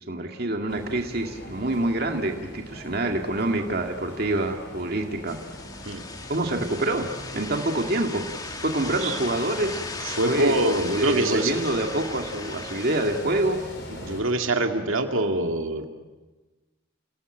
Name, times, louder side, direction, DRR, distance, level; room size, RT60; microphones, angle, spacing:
voice 1, 0.1-5.4 6.3-7.1 7.3-8.2 8.6-9.8 10.3-10.7 11.0-13.6, right 1 dB, 50° right, 4 dB, 2.1 m, -26 dB
sound 1, 0.7-14.2, left 1 dB, 55° left, 4.8 m, -42 dB
sound 2, 5.3-14.3, left 3 dB, 20° left, 1.5 m, -38 dB
voice 2, 8.9-9.2 10.0-11.5 14.0-15.9, right 2 dB, 85° right, 5 dB, 2.1 m, -24 dB
29.5 x 17.5 x 8.9 m, 1.2 s
head